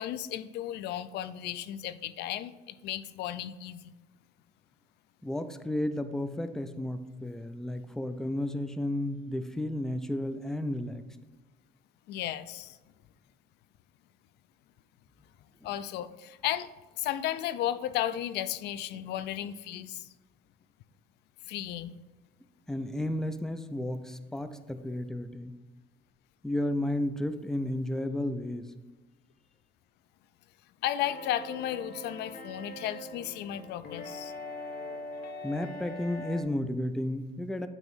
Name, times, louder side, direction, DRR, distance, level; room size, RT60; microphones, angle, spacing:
voice 1, 0.0-3.9 12.1-12.8 15.6-16.7 17.0-20.1 21.5-22.0 30.8-34.3, left 12 dB, 80° left, 14 dB, 0.4 m, -34 dB
voice 2, 5.2-11.0 22.7-25.6 26.4-28.7 35.4-37.7, left 1 dB, 5° left, 10 dB, 0.4 m, -33 dB
sound 1, 31.0-36.4, left 1 dB, 60° left, 1.1 m, -42 dB
9.0 x 3.0 x 5.5 m, 1.2 s
cardioid pair, 110°, 17 cm